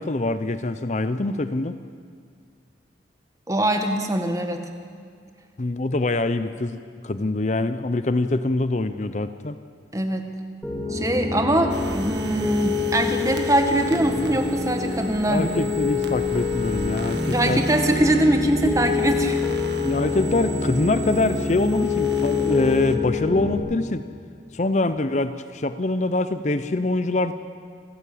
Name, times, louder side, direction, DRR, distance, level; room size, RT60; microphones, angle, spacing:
voice 1, 0.0-1.7 5.6-6.8 7.0-9.6 15.3-17.6 19.8-24.0 24.5-27.3, left 2 dB, 40° left, 11 dB, 0.6 m, -24 dB
voice 2, 3.5-4.6 9.9-10.3 10.9-15.5 17.3-19.4, right 1 dB, 20° right, 5 dB, 1.7 m, -22 dB
Piano, 10.6-23.5, left 4 dB, 5° left, 3.3 m, -26 dB
sound 1, 11.7-23.0, right 3 dB, 70° right, 1.6 m, -38 dB
28.0 x 14.0 x 8.6 m, 2.1 s
head